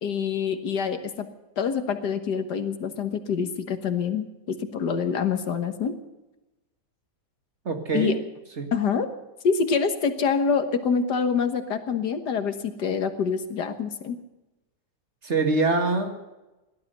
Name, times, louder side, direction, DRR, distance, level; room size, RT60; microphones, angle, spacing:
voice 1, 0.0-1.3 1.6-5.9 7.9-8.2 8.7-9.1 9.4-14.2, left 6 dB, 80° left, 8 dB, 1.9 m, -26 dB
voice 2, 7.7-8.2 8.6-8.7 15.2-16.2, right 3 dB, 45° right, 5 dB, 2.1 m, -24 dB
17.5 x 12.5 x 6.6 m, 1.0 s
omnidirectional pair, 1.8 m